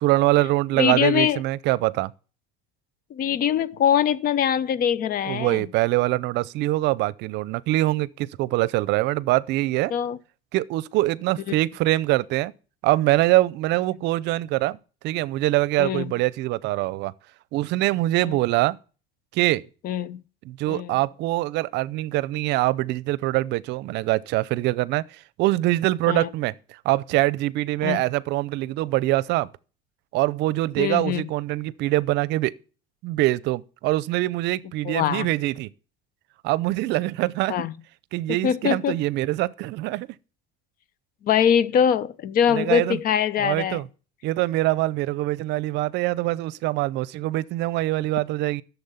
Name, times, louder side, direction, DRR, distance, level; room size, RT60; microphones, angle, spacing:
voice 1, 0.0-2.1 5.3-9.9 10.5-12.5 12.8-14.8 15.0-17.1 17.5-18.8 19.3-19.6 20.4-25.0 25.4-29.5 30.1-32.5 33.0-35.7 36.4-37.6 38.1-40.1 42.5-43.0 43.4-43.9 44.2-48.6, right 17 dB, 70° right, 0.6 m, -24 dB
voice 2, 0.7-1.4 3.1-5.7 9.9-10.2 15.8-16.0 18.2-18.4 19.8-20.2 20.7-21.0 26.1-26.3 27.8-28.0 30.8-31.2 34.8-35.3 37.5-37.7 38.4-39.0 41.2-43.8, left 9 dB, 50° left, 0.9 m, -23 dB
11.5 x 7.1 x 5.6 m
cardioid pair, 110°, 19 cm